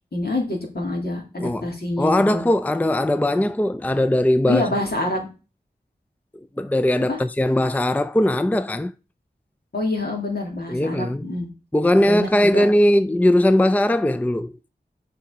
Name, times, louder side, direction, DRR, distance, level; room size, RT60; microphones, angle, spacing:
voice 1, 0.1-2.4 4.5-5.3 7.1-7.2 9.7-11.5 12.0-12.7, left 2 dB, 65° left, 3.1 m, -26 dB
voice 2, 1.4-1.7 2.0-4.6 6.6-8.9 10.7-11.3 11.7-14.5, left 1 dB, 10° left, 0.4 m, -19 dB
7.4 x 5.0 x 5.2 m
wide cardioid pair, 55°, 17 cm